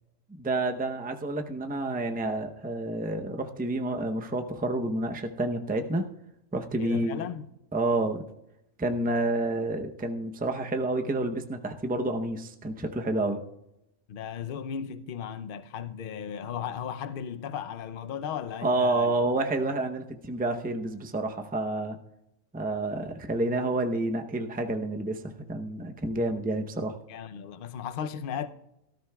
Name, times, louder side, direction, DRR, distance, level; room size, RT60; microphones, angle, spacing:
voice 1, 0.4-6.1 6.5-7.3 7.7-8.2 8.8-13.4 18.6-22.0 22.5-26.9, right 2 dB, 10° right, 0.6 m, -29 dB
voice 2, 6.8-7.5 14.1-19.2 19.6-19.7 27.1-28.5, left 8 dB, 55° left, 0.7 m, -36 dB
17.5 x 13.0 x 2.3 m
omnidirectional pair, 1.3 m